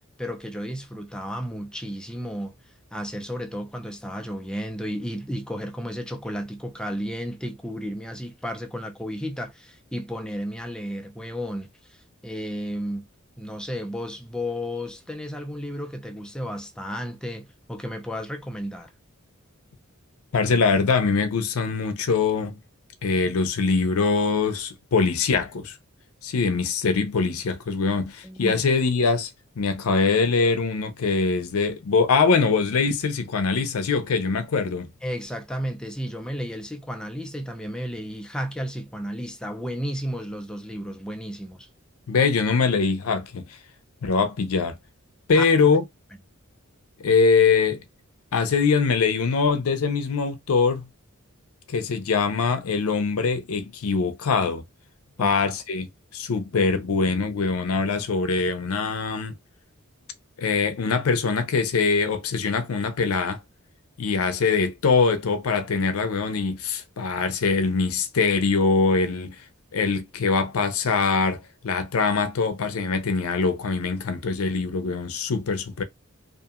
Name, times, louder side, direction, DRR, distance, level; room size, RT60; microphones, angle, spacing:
voice 1, 0.2-2.5 2.9-13.1 13.4-18.9 28.2-28.7 35.0-41.7 45.3-45.4 55.2-55.3, equal, 5° left, 0.4 m, -33 dB
voice 2, 20.3-22.6 23.0-25.7 26.2-29.3 29.6-34.9 42.1-43.4 44.0-44.8 45.3-45.8 47.0-47.8 48.3-50.9 51.7-54.6 55.2-55.9 56.1-59.3 60.4-63.4 64.0-69.4 69.7-75.8, left 4 dB, 90° left, 0.5 m, -23 dB
2.8 x 2.5 x 2.4 m
head